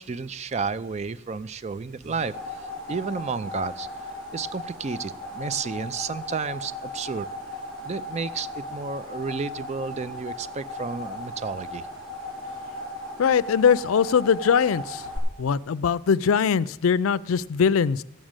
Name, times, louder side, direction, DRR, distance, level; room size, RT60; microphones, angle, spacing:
voice 1, 0.0-3.9 4.3-7.3 7.8-11.9, right 5 dB, 30° right, 16 dB, 0.4 m, -32 dB
sound 1, 2.0-15.2, left 1 dB, 90° right, 4.4 m, -37 dB
voice 2, 13.2-15.1 15.4-18.0, left 6 dB, 80° left, 17 dB, 0.4 m, -21 dB
14.0 x 6.3 x 8.8 m, 0.86 s
head